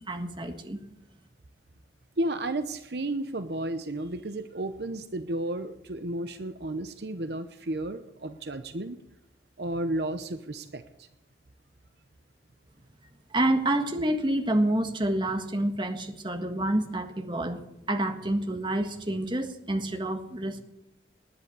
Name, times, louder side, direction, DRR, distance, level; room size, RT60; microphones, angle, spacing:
voice 1, 0.1-0.8 13.3-20.6, right 1 dB, 25° right, 7 dB, 1.6 m, -28 dB
voice 2, 2.2-9.0 9.6-11.1, right 1 dB, 65° right, 10 dB, 0.9 m, -33 dB
19.0 x 10.5 x 6.9 m, 0.89 s
head